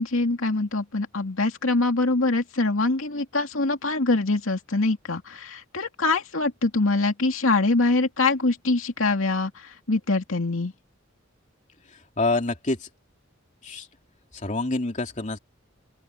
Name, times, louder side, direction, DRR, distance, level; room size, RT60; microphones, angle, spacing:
voice 1, 0.0-10.7, left 3 dB, 85° left, 2.4 m, -24 dB
voice 2, 12.2-12.9 13.6-13.9 14.3-15.4, left 2 dB, 40° left, 2.9 m, -26 dB
open air
head